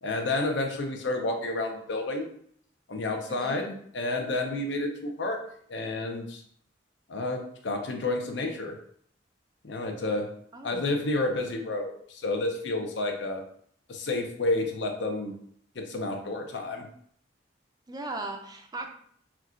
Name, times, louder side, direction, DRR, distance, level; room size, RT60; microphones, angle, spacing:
voice 1, 0.0-2.3 2.9-5.4 5.7-6.4 7.1-8.8 9.6-10.3 10.6-13.4 13.9-15.3 15.8-16.9, left 2 dB, 70° left, 3 dB, 0.7 m, -30 dB
voice 2, 3.3-3.6 10.5-10.8 17.9-18.9, right 2 dB, 20° right, 4 dB, 0.4 m, -37 dB
5.8 x 2.3 x 2.5 m, 0.62 s
head